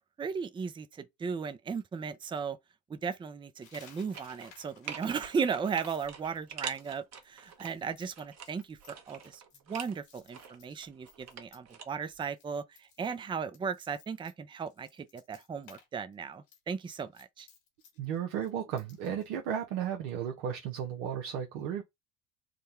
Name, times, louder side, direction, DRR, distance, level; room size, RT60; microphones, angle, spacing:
voice 1, 0.2-2.6 2.9-8.8 9.1-9.4 9.7-17.5, right 6 dB, 15° right, 0.4 m, -36 dB
Coin (dropping), 3.6-11.8 12.1-12.4 12.7-15.9 16.1-19.3, left 6 dB, 90° left, 1.5 m, -59 dB
sound 1, 4.1-4.6 4.9-7.7 8.1-10.0 10.3-11.9 12.1-12.2, right 7 dB, 40° right, 1.1 m, -45 dB
voice 2, 18.0-21.8, right 8 dB, 75° right, 0.8 m, -34 dB
3.6 x 2.1 x 4.3 m
hypercardioid pair, 80°, 39 cm